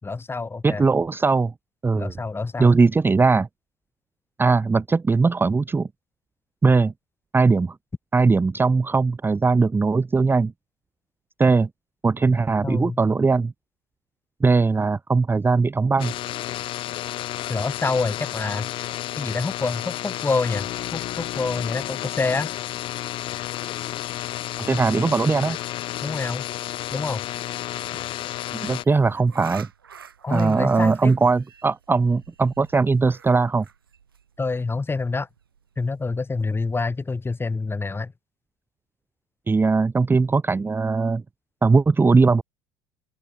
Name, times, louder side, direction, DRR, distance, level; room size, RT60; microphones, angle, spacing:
voice 1, 0.0-0.9 2.0-2.7 12.6-13.0 17.5-18.7 19.2-22.5 26.0-26.5 26.9-27.2 30.2-31.1 34.4-35.3 35.8-38.1, left 3 dB, 20° left, 3.6 m, -27 dB
voice 2, 0.6-1.5 1.8-2.1 2.6-3.5 4.4-5.9 6.6-6.9 7.3-7.8 8.1-10.5 11.4-11.7 12.0-13.5 14.4-16.1 24.6-25.6 28.5-29.7 30.3-33.6 39.5-41.2 41.6-42.4, right 4 dB, 20° right, 1.0 m, -19 dB
sound 1, 16.0-28.8, left 14 dB, 45° left, 0.5 m, -31 dB
sound 2, 27.7-37.9, right 7 dB, 85° right, 4.5 m, -48 dB
open air
hypercardioid pair, 65°, 12 cm